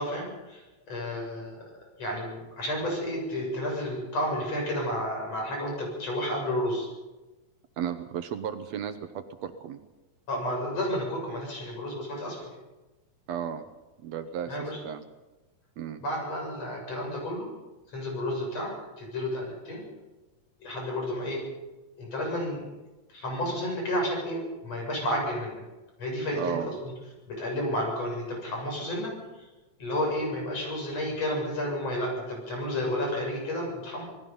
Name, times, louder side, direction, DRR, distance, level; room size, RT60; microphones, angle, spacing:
voice 1, 0.0-1.7 2.0-6.9 10.3-12.4 14.5-14.8 16.0-17.5 17.9-18.7 19.0-19.8 20.6-21.4 22.0-22.6 23.1-25.6 26.0-26.9 27.3-29.5 29.8-34.0, left 1 dB, 60° left, 0 dB, 8.2 m, -31 dB
voice 2, 7.8-9.8 13.3-13.7 14.0-14.6 14.8-15.0 15.8-16.0 26.3-26.7, right 8 dB, 70° right, 9 dB, 2.2 m, -34 dB
27.5 x 19.0 x 5.5 m, 1.1 s
omnidirectional pair, 3.4 m